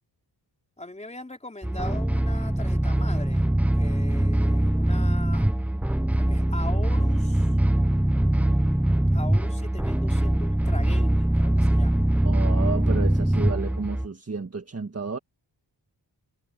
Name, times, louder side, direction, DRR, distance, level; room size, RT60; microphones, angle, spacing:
voice 1, 0.8-5.4 6.1-7.6 9.1-12.1, left 2 dB, 15° left, 3.7 m, -40 dB
sound 1, 1.6-14.1, right 1 dB, 5° right, 0.5 m, -22 dB
voice 2, 12.2-15.2, right 4 dB, 35° right, 1.7 m, -31 dB
wide cardioid pair, 80°, 44 cm